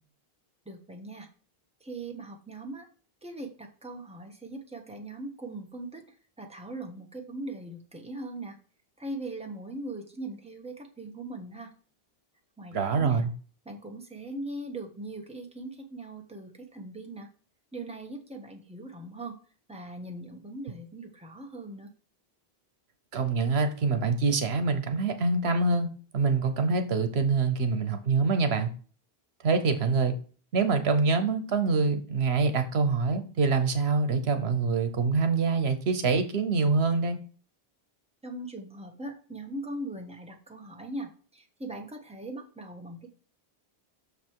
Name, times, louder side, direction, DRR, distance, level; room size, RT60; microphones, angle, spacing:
voice 1, 0.6-1.3 1.8-2.9 3.2-8.6 9.0-11.7 12.6-13.2 13.6-17.3 17.7-19.3 19.7-21.9 38.2-43.1, right 2 dB, 5° right, 2 dB, 1.3 m, -40 dB
voice 2, 12.7-13.3 23.1-25.9 26.1-28.7 29.4-30.1 30.5-37.2, right 4 dB, 80° right, 8 dB, 1.2 m, -25 dB
6.7 x 5.4 x 4.6 m, 0.40 s
omnidirectional pair, 1.1 m